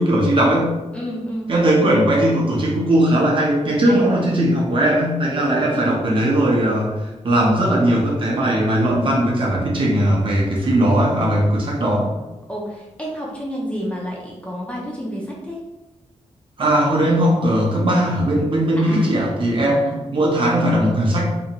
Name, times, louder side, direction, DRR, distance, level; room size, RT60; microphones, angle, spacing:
voice 1, 0.0-0.8 1.5-12.1 16.6-21.2, right 1 dB, 45° right, -3 dB, 0.6 m, -18 dB
voice 2, 0.9-1.5 3.9-4.2 5.7-5.9 12.5-15.6 18.8-19.1 19.7-20.0, equal, 10° left, -4 dB, 0.5 m, -30 dB
2.6 x 2.4 x 2.8 m, 1.1 s
wide cardioid pair, 165°, 12 cm